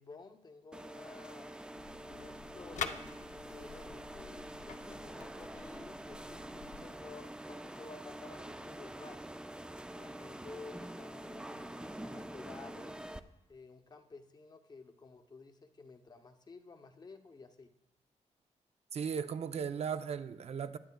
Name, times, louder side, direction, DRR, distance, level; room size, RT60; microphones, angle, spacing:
voice 1, 0.0-1.6 2.1-3.1 3.5-9.4 9.9-13.0 13.5-17.7, left 4 dB, 35° left, 0.7 m, -53 dB
sound 1, 0.7-13.2, right 1 dB, 5° right, 0.4 m, -46 dB
sound 2, 1.7-6.8, left 7 dB, 85° left, 0.6 m, -46 dB
voice 2, 18.9-20.8, right 7 dB, 60° right, 0.5 m, -36 dB
20.5 x 10.5 x 2.2 m
wide cardioid pair, 135°, 12 cm